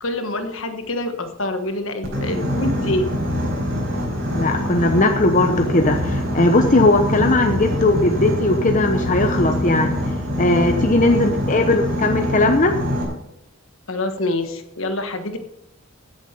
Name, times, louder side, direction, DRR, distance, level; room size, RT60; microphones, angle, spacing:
voice 1, 0.0-3.1 11.0-11.7 13.9-15.4, left 1 dB, 65° left, 7 dB, 1.4 m, -26 dB
Boat Water vehicle, 2.0-13.0, equal, 50° right, 4.9 m, -24 dB
voice 2, 4.3-10.0 10.4-12.7, left 2 dB, 35° left, 5 dB, 0.9 m, -18 dB
16.0 x 7.3 x 5.2 m, 0.87 s
head